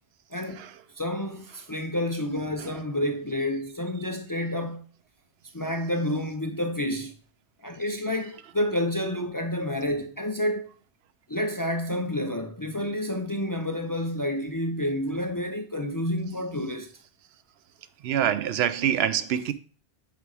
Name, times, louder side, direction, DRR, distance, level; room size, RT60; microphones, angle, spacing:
voice 1, 0.3-0.6 1.0-4.9 5.5-7.1 7.6-10.7 11.3-16.9, left 1 dB, 30° left, 0.4 m, -29 dB
voice 2, 18.0-19.5, right 9 dB, 80° right, 0.8 m, -25 dB
8.0 x 3.6 x 4.7 m
omnidirectional pair, 1.1 m